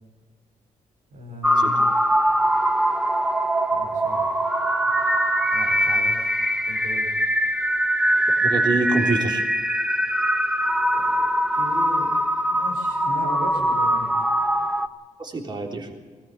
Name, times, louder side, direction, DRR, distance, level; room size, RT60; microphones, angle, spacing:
voice 1, 1.1-1.9 3.7-4.3 5.5-6.4 6.7-7.2 10.6-11.2 11.5-12.1 12.5-14.1, right 1 dB, 80° right, -1 dB, 5.6 m, -37 dB
sound 1, 1.4-14.9, right 1 dB, 5° right, 1.1 m, -22 dB
voice 2, 8.4-9.4 15.2-15.9, right 2 dB, 35° right, 2 dB, 3.5 m, -25 dB
20.0 x 18.0 x 8.8 m, 1.5 s
cardioid pair, 130°, 13 cm